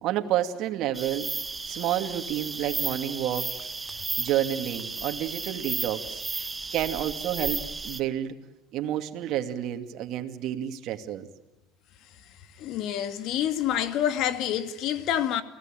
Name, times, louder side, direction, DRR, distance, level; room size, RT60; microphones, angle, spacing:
voice 1, 0.0-1.3 1.6-3.7 4.2-8.4 8.7-11.3, right 11 dB, 60° right, 2.4 m, -30 dB
sound 1, 0.9-8.0, right 3 dB, 20° right, 1.6 m, -34 dB
voice 2, 12.6-15.4, left 10 dB, 60° left, 2.3 m, -27 dB
29.5 x 18.0 x 9.1 m
hypercardioid pair, 80°, 0 cm